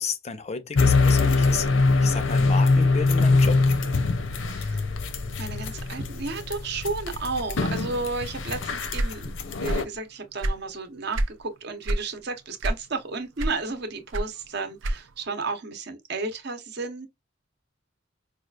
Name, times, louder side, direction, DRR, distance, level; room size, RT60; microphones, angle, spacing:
voice 1, 0.0-1.7 2.0-3.6, left 5 dB, 35° left, 0.5 m, -31 dB
sound 1, 0.7-9.8, left 3 dB, 75° left, 0.6 m, -23 dB
voice 2, 4.5-4.8 5.4-9.3 9.6-17.1, right 3 dB, 60° right, 0.8 m, -32 dB
sound 2, 8.9-10.0 10.2-11.4 11.8-12.1 12.6-13.0 13.4-15.3, right 1 dB, 80° right, 0.5 m, -27 dB
4.9 x 2.4 x 2.3 m
head